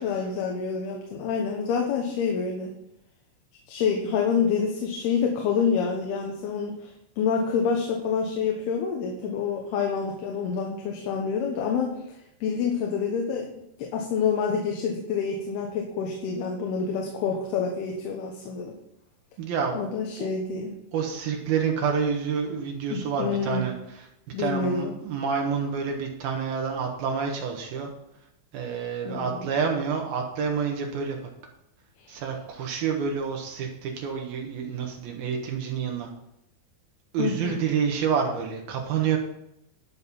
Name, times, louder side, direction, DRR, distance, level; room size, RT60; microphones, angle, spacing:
voice 1, 0.0-2.7 3.7-6.9 7.2-11.9 12.4-13.5 13.8-18.8 19.7-20.7 22.9-23.7 24.3-24.9 29.1-29.5 37.2-37.6, left 6 dB, 85° left, 1 dB, 3.3 m, -27 dB
voice 2, 19.4-19.9 20.2-20.3 20.9-23.7 24.4-27.9 28.5-31.2 32.1-36.1 37.1-39.2, right 6 dB, 75° right, 1 dB, 3.2 m, -28 dB
12.0 x 6.5 x 5.6 m, 0.80 s
omnidirectional pair, 4.4 m